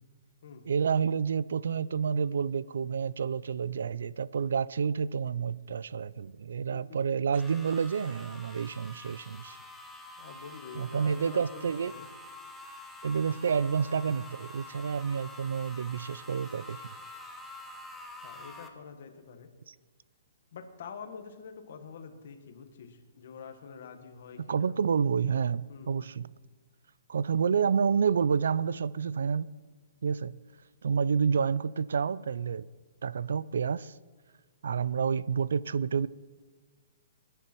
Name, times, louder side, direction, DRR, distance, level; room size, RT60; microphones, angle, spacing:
voice 1, 0.7-9.6 10.7-11.9 13.0-16.8 19.7-19.8 24.5-26.3 27.1-29.5 30.0-30.4 30.8-32.7 33.0-33.9 34.6-36.1, right 6 dB, 75° right, 0.4 m, -29 dB
sound 1, 7.3-18.7, left 2 dB, ahead, 0.8 m, -47 dB
voice 2, 10.2-12.1 18.2-19.5 20.5-24.7 25.7-26.1 34.9-35.3, left 6 dB, 45° left, 1.6 m, -46 dB
19.5 x 10.0 x 4.5 m
hypercardioid pair, 175°, 0 cm